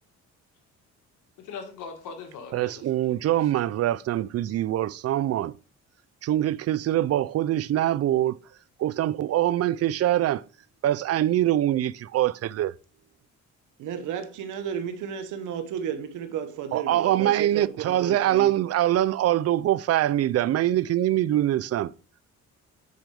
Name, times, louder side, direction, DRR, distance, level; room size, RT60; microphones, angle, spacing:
voice 1, 1.4-3.5, left 5 dB, 85° left, 1.6 m, -41 dB
voice 2, 2.5-5.5 6.2-8.4 8.8-10.4 10.8-12.7 16.7-21.9, right 13 dB, 55° right, 0.4 m, -24 dB
voice 3, 13.8-18.5, right 8 dB, 85° right, 1.0 m, -33 dB
9.1 x 5.1 x 3.3 m
cardioid pair, 90°, 30 cm